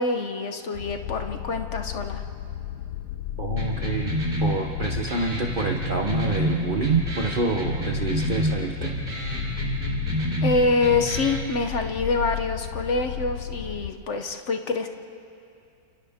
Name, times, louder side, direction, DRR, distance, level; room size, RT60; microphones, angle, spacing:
voice 1, 0.0-2.2 10.4-14.9, left 3 dB, 55° left, 6 dB, 0.8 m, -26 dB
sound 1, 0.7-13.9, left 11 dB, 80° left, 1.5 m, -34 dB
voice 2, 3.4-4.1 4.4-8.9, right 4 dB, 75° right, 2 dB, 0.4 m, -27 dB
sound 2, 3.6-11.5, right 1 dB, 20° right, 3.5 m, -29 dB
30.0 x 29.0 x 3.6 m, 2.6 s
omnidirectional pair, 2.4 m